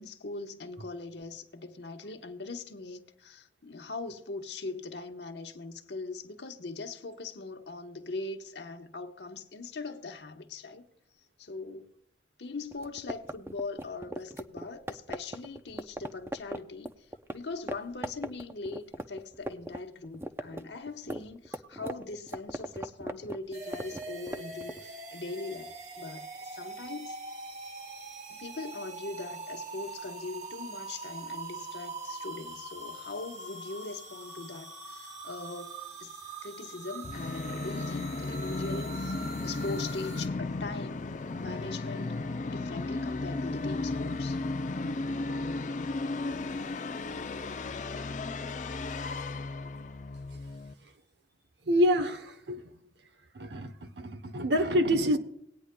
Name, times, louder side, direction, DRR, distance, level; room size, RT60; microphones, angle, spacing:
voice 1, 0.0-10.9 11.4-11.9 12.4-27.2 28.3-41.0 41.4-42.2 42.4-44.4, left 3 dB, 75° left, 1.0 m, -41 dB
sound 1, 12.7-17.4 17.7-17.8 18.0-19.8 20.0-24.8, right 1 dB, 15° right, 0.4 m, -38 dB
sound 2, 23.5-40.3, right 3 dB, 45° right, 1.9 m, -43 dB
Musical instrument, 37.0-50.7, left 3 dB, 45° left, 0.5 m, -34 dB
voice 2, 51.7-52.6 53.3-55.2, equal, 80° right, 0.9 m, -27 dB
19.0 x 9.7 x 2.2 m
head